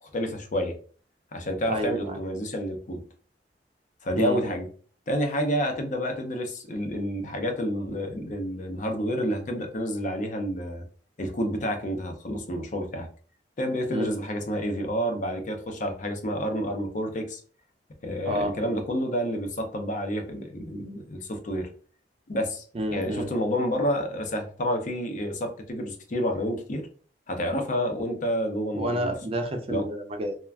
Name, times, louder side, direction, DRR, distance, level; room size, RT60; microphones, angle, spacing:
voice 1, 0.0-0.8 1.3-3.0 4.0-4.7 5.1-10.8 11.2-13.1 13.6-17.4 18.0-21.7 22.3-22.6 22.9-26.9 27.3-29.1 29.7-29.9, equal, 45° left, 5 dB, 0.5 m, -29 dB
voice 2, 1.7-2.2 4.1-4.5 13.9-14.1 18.3-18.7 22.7-23.3 28.8-30.4, right 1 dB, 30° right, 5 dB, 0.4 m, -30 dB
2.4 x 2.2 x 3.3 m, 0.42 s
head